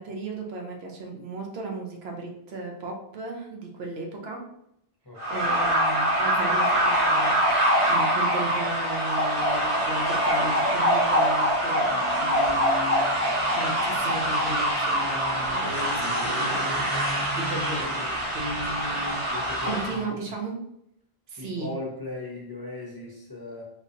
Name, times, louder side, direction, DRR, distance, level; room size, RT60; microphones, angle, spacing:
voice 1, 0.0-4.4 5.3-7.5 7.9-13.0 13.5-20.6 21.3-21.7, right 2 dB, 75° right, 0 dB, 1.0 m, -35 dB
voice 2, 5.1-5.5 19.3-20.1 21.4-23.6, left 2 dB, 25° left, -5 dB, 0.7 m, -38 dB
sound 1, 5.2-20.0, equal, 30° right, 1.0 m, -24 dB
3.7 x 2.7 x 2.5 m, 0.75 s
omnidirectional pair, 1.1 m